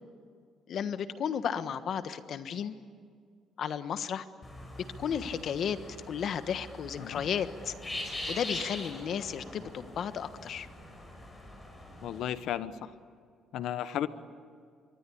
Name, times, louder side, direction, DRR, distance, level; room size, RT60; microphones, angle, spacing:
voice 1, 0.7-2.7 3.6-4.2 5.0-5.8 6.1-7.7 8.3-10.7, left 8 dB, 50° left, 11 dB, 1.3 m, -33 dB
sound 1, 4.4-12.4, left 1 dB, 15° left, 6.0 m, -43 dB
voice 2, 12.0-12.7 13.5-14.1, left 11 dB, 70° left, 13 dB, 1.2 m, -33 dB
26.0 x 23.5 x 8.6 m, 2.2 s
cardioid pair, 145°, 0 cm